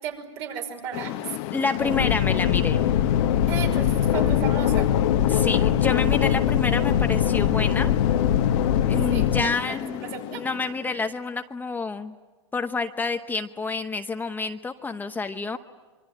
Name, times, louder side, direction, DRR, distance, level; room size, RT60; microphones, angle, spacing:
voice 1, 0.0-1.4 1.8-1.9 3.5-4.9 6.5-6.7 9.1-9.8 10.0-10.4, right 7 dB, 55° right, 4 dB, 5.5 m, -35 dB
sound 1, 0.9-11.2, left 15 dB, 50° left, 1.1 m, -33 dB
voice 2, 1.5-2.8 5.3-7.9 8.9-10.0 10.3-12.1 12.5-15.6, left 4 dB, 10° left, 7 dB, 0.9 m, -28 dB
sound 2, 1.8-9.4, left 9 dB, 70° left, 1.3 m, -22 dB
25.5 x 24.5 x 9.2 m, 1.3 s
hypercardioid pair, 115°, 16 cm